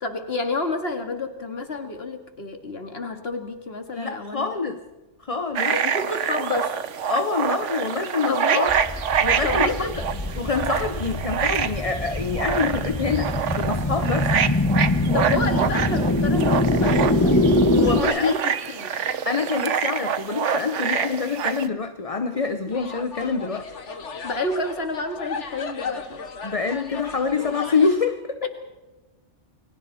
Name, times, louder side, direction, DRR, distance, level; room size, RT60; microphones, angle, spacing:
voice 1, 0.0-4.6 5.7-6.7 8.3-8.7 9.4-9.9 10.7-10.8 15.1-18.9 22.3-22.4 24.2-26.2, left 3 dB, 55° left, 6 dB, 2.4 m, -30 dB
voice 2, 3.9-4.8 5.2-5.8 7.1-8.7 9.2-9.9 10.4-14.3 17.8-18.3 19.2-23.7 26.4-28.4, left 5 dB, 30° left, 8 dB, 1.0 m, -26 dB
sound 1, 5.5-21.7, right 7 dB, 75° right, 1.3 m, -26 dB
sound 2, 8.7-18.0, left 1 dB, 15° left, 1.4 m, -23 dB
sound 3, 22.7-27.9, left 5 dB, 70° left, 1.8 m, -36 dB
29.5 x 22.0 x 4.3 m, 1.1 s
omnidirectional pair, 1.3 m